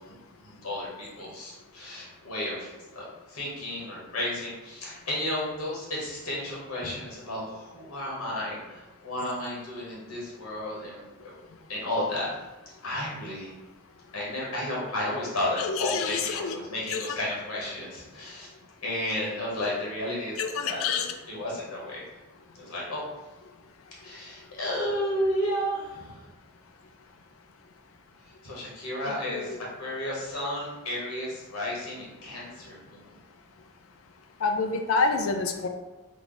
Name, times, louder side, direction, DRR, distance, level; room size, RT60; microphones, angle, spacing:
voice 1, 0.4-11.3 11.7-12.3 12.8-13.5 14.1-18.5 18.8-20.4 20.6-20.8 21.3-22.0 22.5-23.0 24.0-26.3 28.4-33.1, left 1 dB, 90° left, -5 dB, 1.3 m, -33 dB
voice 2, 15.6-16.6 16.9-17.0 20.4-21.1 29.3-29.6 34.4-35.7, left 4 dB, 70° left, 6 dB, 0.4 m, -27 dB
3.2 x 2.3 x 3.9 m, 1.1 s
head